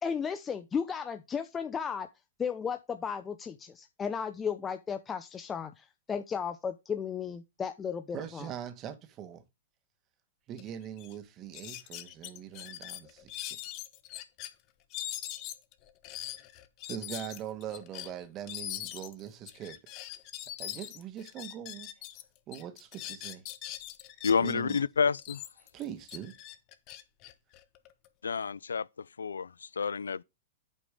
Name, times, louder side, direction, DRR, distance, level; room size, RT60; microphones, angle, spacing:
voice 1, 0.0-2.1 2.4-8.5, left 6 dB, 20° left, 0.7 m, -35 dB
voice 2, 8.1-9.4 10.5-13.6 16.9-19.8 20.6-21.9 22.5-23.4 24.4-24.8 25.7-26.4, right 10 dB, 35° right, 1.5 m, -42 dB
sound 1, 10.6-10.7 11.0-11.1 11.5-14.5 14.9-22.2 22.5-24.8 25.2-28.1, left 13 dB, 40° left, 1.1 m, -42 dB
voice 3, 24.2-25.4 28.2-30.2, left 6 dB, 85° left, 0.4 m, -29 dB
8.3 x 5.1 x 5.0 m
hypercardioid pair, 115°, 0 cm